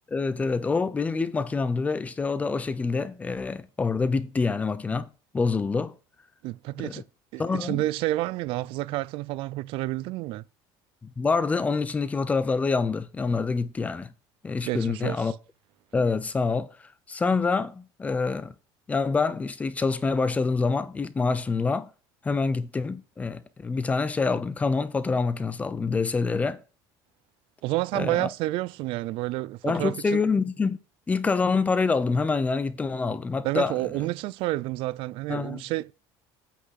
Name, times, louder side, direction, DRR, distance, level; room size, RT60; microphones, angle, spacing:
voice 1, 0.1-5.1 5.3-6.0 6.8-7.0 7.4-7.8 11.0-14.1 14.4-15.3 15.9-16.8 17.1-18.5 18.9-21.9 22.2-26.6 27.9-28.3 29.6-30.8 31.1-33.7 35.3-35.6, left 4 dB, 15° left, 0.7 m, -26 dB
voice 2, 6.4-7.0 7.3-10.4 14.6-15.3 27.6-30.2 33.4-35.9, right 17 dB, 60° right, 0.5 m, -29 dB
8.4 x 5.9 x 5.7 m
cardioid pair, 160°, 10 cm